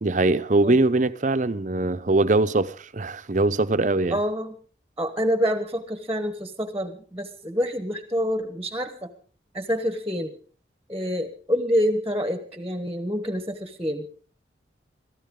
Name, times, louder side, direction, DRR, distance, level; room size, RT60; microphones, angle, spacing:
voice 1, 0.0-4.2, right 2 dB, 40° right, 0.7 m, -22 dB
voice 2, 4.1-4.5 5.0-9.1 9.5-10.3 10.9-14.1, equal, 15° right, 1.1 m, -27 dB
23.0 x 13.5 x 3.7 m
head